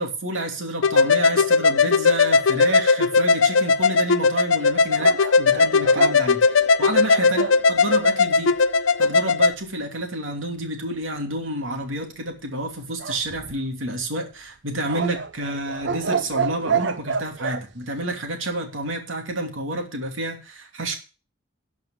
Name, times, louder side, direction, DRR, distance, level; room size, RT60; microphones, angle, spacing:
voice 1, 0.0-8.5 9.0-21.0, right 1 dB, 80° right, 3 dB, 2.8 m, -29 dB
sound 1, 0.8-9.5, left 4 dB, 80° left, 0.6 m, -18 dB
sound 2, 5.0-7.6 13.0-13.9 14.9-17.6, right 6 dB, 60° right, 0.5 m, -28 dB
12.0 x 5.3 x 7.2 m, 0.34 s
head